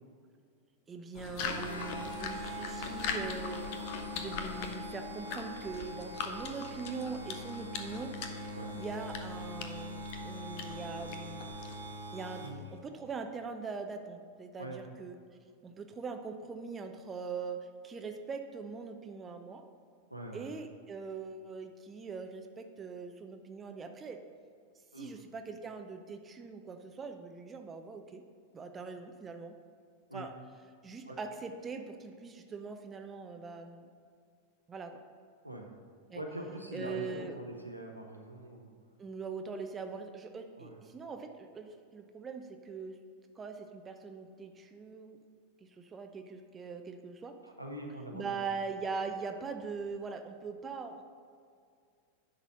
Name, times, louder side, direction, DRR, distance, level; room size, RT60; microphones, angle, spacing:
voice 1, 0.9-3.7 4.1-8.1 8.8-11.5 12.1-12.4 12.7-15.2 15.6-19.6 20.3-24.2 24.9-28.2 28.5-29.6 30.1-30.3 30.8-33.9 34.7-35.0 36.1-36.2 36.7-37.4 39.0-43.0 43.4-45.2 45.6-47.3 48.1-51.0, right 5 dB, 20° right, 6 dB, 0.5 m, -42 dB
sound 1, 1.1-12.0, left 6 dB, 45° left, 0.7 m, -42 dB
sound 2, 1.4-12.8, equal, 80° left, 1.0 m, -43 dB
voice 2, 20.1-20.5 24.9-25.1 30.1-30.3 31.0-31.2 35.4-35.7 36.1-38.7 40.6-40.7 47.4-48.4, right 1 dB, 90° right, 0 dB, 1.0 m, -43 dB
10.0 x 4.1 x 5.6 m, 2.2 s
figure-of-eight pair, 90°, 0 cm